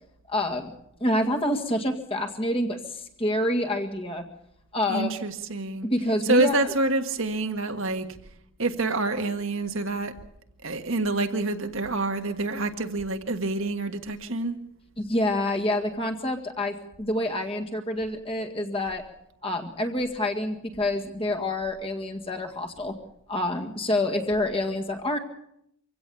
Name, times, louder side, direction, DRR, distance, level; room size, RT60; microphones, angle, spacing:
voice 1, 0.3-0.7 1.0-4.3 4.7-5.1 5.8-6.6 15.0-19.0 19.4-23.0 23.3-25.2, left 1 dB, 25° left, 1.9 m, -27 dB
voice 2, 4.9-5.9 6.2-8.1 8.6-10.1 10.6-14.6, right 2 dB, 65° right, 1.6 m, -27 dB
25.0 x 16.5 x 7.0 m
head